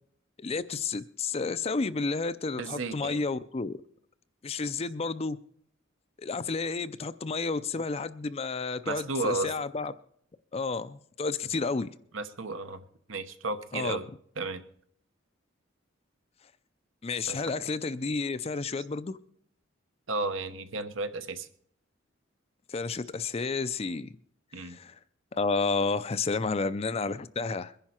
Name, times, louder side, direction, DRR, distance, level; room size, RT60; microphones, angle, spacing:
voice 1, 0.4-3.8 4.4-5.4 6.2-9.9 10.5-11.9 13.7-14.0 17.0-19.2 22.7-24.1 24.6-25.0 25.3-27.7, left 4 dB, 30° left, 0.5 m, -31 dB
voice 2, 2.6-3.2 8.8-9.5 12.1-12.8 13.1-14.1 14.4-14.6 17.3-17.5 20.1-21.5 24.5-24.8, right 3 dB, 75° right, 1.0 m, -33 dB
22.0 x 10.5 x 4.4 m
head